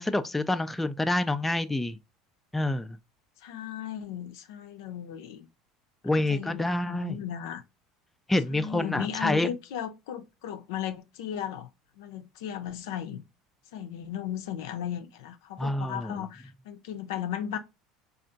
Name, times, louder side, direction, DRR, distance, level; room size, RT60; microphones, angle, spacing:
voice 1, 0.0-2.0 2.5-3.0 6.0-7.2 8.3-9.5 15.6-16.3, left 2 dB, 10° left, 0.3 m, -27 dB
voice 2, 3.4-5.5 6.1-7.6 8.5-11.7 12.0-13.2 13.7-17.6, left 9 dB, 70° left, 0.5 m, -36 dB
4.3 x 2.4 x 2.4 m
figure-of-eight pair, 70°, 2 cm